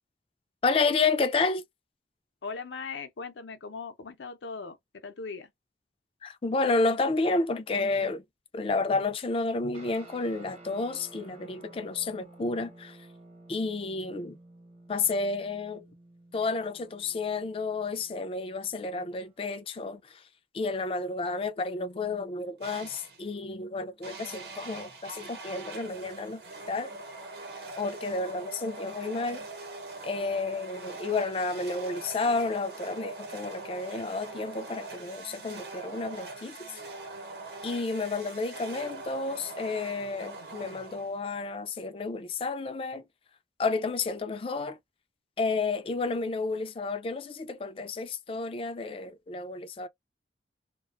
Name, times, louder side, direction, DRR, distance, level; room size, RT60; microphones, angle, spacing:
voice 1, 0.6-1.6 6.2-8.2 8.5-13.0 13.5-14.4 14.9-15.8 16.3-20.2 20.5-26.4 26.7-27.0 27.8-29.5 30.0-36.6 37.6-43.0 43.6-44.8 45.4-49.9, left 3 dB, 30° left, 0.4 m, -31 dB
voice 2, 2.4-5.5, left 4 dB, 80° left, 0.6 m, -39 dB
sound 1, 9.7-19.4, right 2 dB, 35° right, 0.9 m, -53 dB
sound 2, 22.6-23.3 24.0-41.4, right 3 dB, 60° right, 0.9 m, -42 dB
2.4 x 2.3 x 2.4 m
head